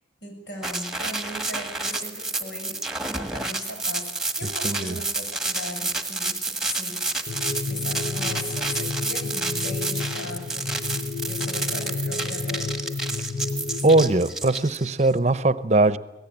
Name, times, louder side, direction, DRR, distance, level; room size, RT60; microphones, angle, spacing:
voice 1, 0.2-7.0 7.7-12.8, left 1 dB, 85° left, 7.5 m, -38 dB
sound 1, 0.6-15.1, right 3 dB, 5° right, 1.5 m, -30 dB
voice 2, 4.4-5.0 13.8-16.0, right 2 dB, 40° right, 0.7 m, -20 dB
sound 2, 7.3-14.1, left 3 dB, 50° left, 0.8 m, -31 dB
25.0 x 18.0 x 8.8 m
head